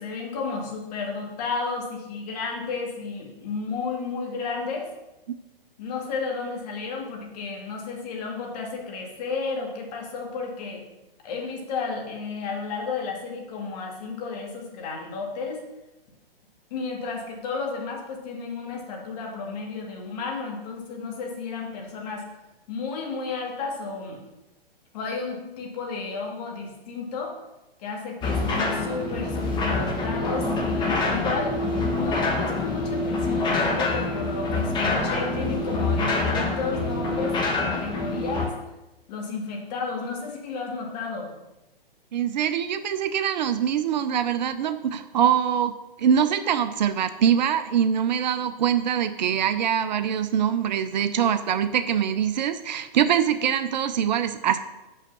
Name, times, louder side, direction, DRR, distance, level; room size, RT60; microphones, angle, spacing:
voice 1, 0.0-4.9 5.8-10.8 11.2-15.7 16.7-22.3 22.7-24.2 24.9-27.4 27.8-31.6 31.9-38.6 39.1-41.3, left 4 dB, 45° left, 0 dB, 2.2 m, -32 dB
sound 1, 28.2-38.5, left 2 dB, 15° left, 1.2 m, -26 dB
voice 2, 42.1-45.7 46.0-54.6, right 9 dB, 50° right, 11 dB, 0.5 m, -23 dB
6.2 x 5.7 x 6.0 m, 1.0 s
hypercardioid pair, 135°, 29 cm